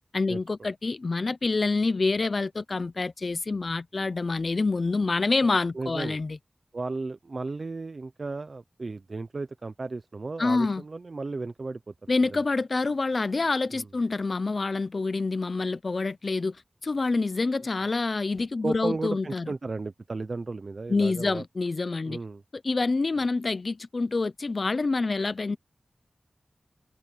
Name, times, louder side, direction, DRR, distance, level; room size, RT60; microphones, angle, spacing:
voice 1, 0.1-6.4 10.4-10.8 12.1-16.6 16.8-19.5 20.9-22.2 22.6-25.6, left 3 dB, 55° left, 0.7 m, -27 dB
voice 2, 5.7-6.2 6.7-12.4 13.7-13.9 18.6-21.4 22.0-22.4, right 3 dB, 55° right, 0.8 m, -34 dB
wide cardioid pair, 80°, 0 cm